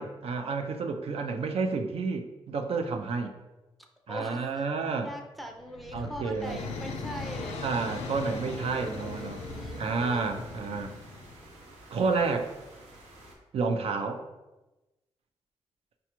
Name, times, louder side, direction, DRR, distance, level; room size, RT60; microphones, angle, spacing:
voice 1, 0.0-3.3 4.1-5.1 5.9-6.6 7.6-9.4 9.8-10.9 11.9-12.5 13.5-14.3, right 4 dB, 65° right, 5 dB, 0.4 m, -30 dB
voice 2, 4.1-4.6 5.0-8.1 8.6-10.4, equal, ahead, 3 dB, 0.4 m, -42 dB
sound 1, 5.4-11.5, left 4 dB, 90° left, 0.4 m, -39 dB
sound 2, 6.4-13.4, right 1 dB, 85° right, 0.7 m, -50 dB
4.9 x 2.3 x 2.9 m, 1.0 s
cardioid pair, 70°, 11 cm